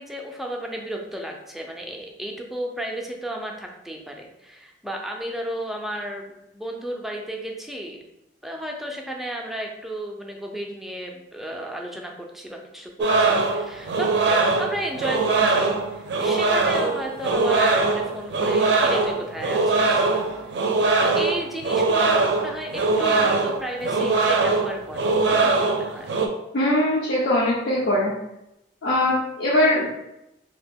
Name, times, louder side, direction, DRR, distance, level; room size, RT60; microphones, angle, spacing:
voice 1, 0.0-8.0 8.4-20.1 21.0-26.1, right 1 dB, ahead, 0 dB, 0.4 m, -33 dB
sound 1, 13.0-26.3, right 3 dB, 70° right, 0.4 m, -22 dB
voice 2, 26.5-28.1 28.8-30.0, left 1 dB, 70° left, -5 dB, 0.6 m, -21 dB
2.8 x 2.4 x 3.5 m, 0.88 s
head